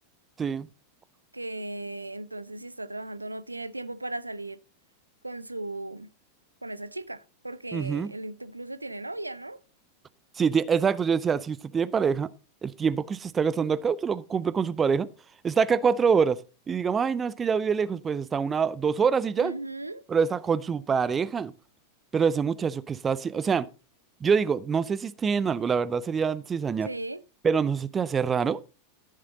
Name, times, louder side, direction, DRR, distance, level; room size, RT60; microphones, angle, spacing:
voice 1, 1.3-4.6 5.2-6.1 6.6-9.6 19.4-20.0 26.8-27.2, right 2 dB, 85° right, 0.5 m, -37 dB
voice 2, 7.7-8.1 10.4-12.3 12.6-15.1 15.4-19.5 20.1-21.5 22.1-23.7 24.2-26.9 27.4-28.6, right 6 dB, 20° right, 0.5 m, -25 dB
14.0 x 6.7 x 3.9 m
figure-of-eight pair, 90°, 0 cm